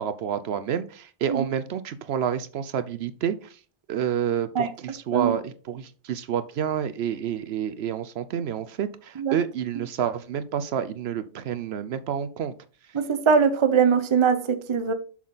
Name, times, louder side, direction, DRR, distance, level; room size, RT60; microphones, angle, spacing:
voice 1, 0.0-3.4 3.9-12.5, right 9 dB, 70° right, 0.8 m, -29 dB
voice 2, 12.9-14.9, right 6 dB, 30° right, 0.7 m, -21 dB
7.3 x 6.0 x 4.0 m
omnidirectional pair, 1.1 m